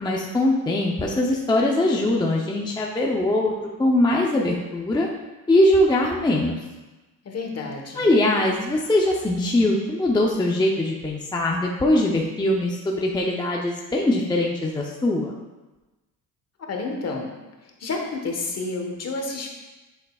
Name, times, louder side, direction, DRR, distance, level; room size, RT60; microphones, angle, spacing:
voice 1, 0.0-5.1 5.5-6.6 8.0-15.3, left 1 dB, 10° left, -1 dB, 0.6 m, -22 dB
voice 2, 7.2-8.1 16.7-17.3 17.6-19.5, left 3 dB, 40° left, 2 dB, 1.2 m, -30 dB
7.8 x 6.9 x 2.3 m, 1.1 s
cardioid pair, 120°, 37 cm